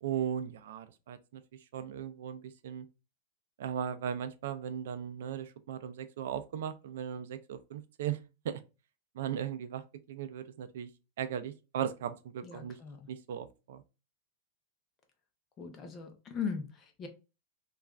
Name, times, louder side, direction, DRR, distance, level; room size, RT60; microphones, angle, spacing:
voice 1, 0.0-1.4 1.7-2.9 3.6-8.2 8.4-8.6 9.1-9.8 10.1-10.9 11.2-12.8 13.1-13.8, right 9 dB, 70° right, 0.4 m, -37 dB
voice 2, 12.4-13.1 15.6-17.1, left 6 dB, 20° left, 0.6 m, -39 dB
3.2 x 2.3 x 2.3 m
supercardioid pair, 165°, 0 cm